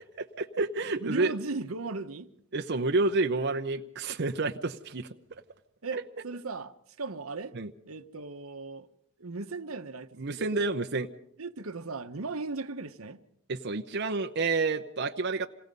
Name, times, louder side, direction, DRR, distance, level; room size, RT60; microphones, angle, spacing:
voice 1, 0.2-1.3 2.5-5.1 5.9-6.0 7.5-7.7 10.2-11.1 13.5-15.5, right 3 dB, 55° right, 0.8 m, -29 dB
voice 2, 1.0-2.3 5.8-7.6 7.9-8.9 9.2-10.4 11.4-13.2, right 3 dB, 85° right, 1.0 m, -37 dB
27.0 x 18.5 x 5.3 m
head